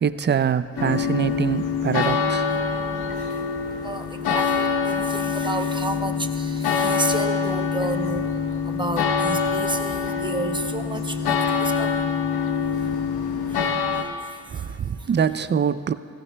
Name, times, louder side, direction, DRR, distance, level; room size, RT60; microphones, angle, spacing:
voice 1, 0.0-2.5 14.5-15.9, right 7 dB, 30° right, 0.4 m, -24 dB
sound 1, 0.8-14.0, left 5 dB, 85° left, 0.8 m, -25 dB
voice 2, 3.8-8.3 8.6-12.0 12.8-12.9 15.0-15.1, right 2 dB, 15° right, 0.8 m, -31 dB
17.0 x 15.0 x 2.3 m
cardioid pair, 65°, 37 cm